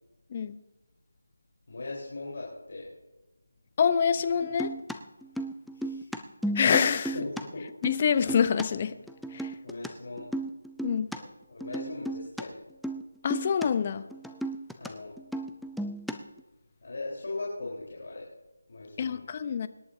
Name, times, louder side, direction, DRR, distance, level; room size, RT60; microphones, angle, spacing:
voice 1, 1.7-2.9 5.7-6.1 7.1-7.6 9.6-10.3 11.1-12.6 14.8-15.1 16.8-18.3 18.7-19.2, left 2 dB, 55° left, 3.9 m, -39 dB
voice 2, 3.8-4.7 6.5-7.2 7.8-9.0 9.3-9.6 10.8-11.1 13.2-14.1 19.0-19.7, left 7 dB, 30° left, 0.7 m, -26 dB
sound 1, 4.4-7.4 7.7-8.7 9.1-9.9 10.2-11.2 11.6-12.4 12.8-13.0 13.3-13.7 13.9-14.9 15.2-16.4, right 1 dB, ahead, 0.4 m, -34 dB
25.0 x 11.0 x 2.7 m
figure-of-eight pair, 165°, 0 cm